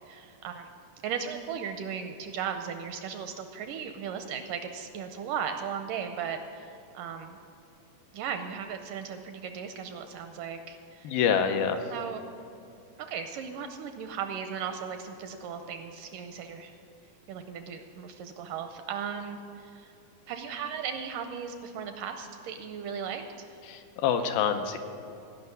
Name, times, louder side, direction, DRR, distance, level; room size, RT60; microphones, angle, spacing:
voice 1, 0.1-0.7 1.0-7.4 8.1-11.2 11.9-12.3 13.0-16.7 17.3-19.9 20.3-23.6, right 7 dB, 80° right, 7 dB, 2.0 m, -37 dB
voice 2, 11.0-11.8 23.7-24.8, left 7 dB, 80° left, 6 dB, 2.6 m, -26 dB
16.5 x 5.8 x 9.3 m, 2.7 s
omnidirectional pair, 4.2 m